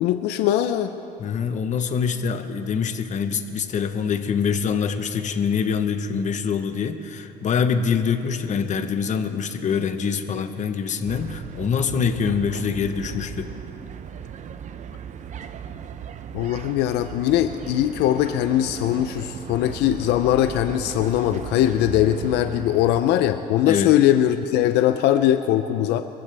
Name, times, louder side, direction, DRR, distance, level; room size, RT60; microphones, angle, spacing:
voice 1, 0.0-1.0 16.3-26.0, left 12 dB, 85° left, 9 dB, 0.5 m, -21 dB
voice 2, 1.2-13.5 23.6-23.9, left 6 dB, 45° left, 8 dB, 1.0 m, -25 dB
sound 1, 11.1-23.0, right 8 dB, 45° right, 0.7 m, -37 dB
24.0 x 15.0 x 3.4 m, 2.8 s
cardioid pair, 110°, 17 cm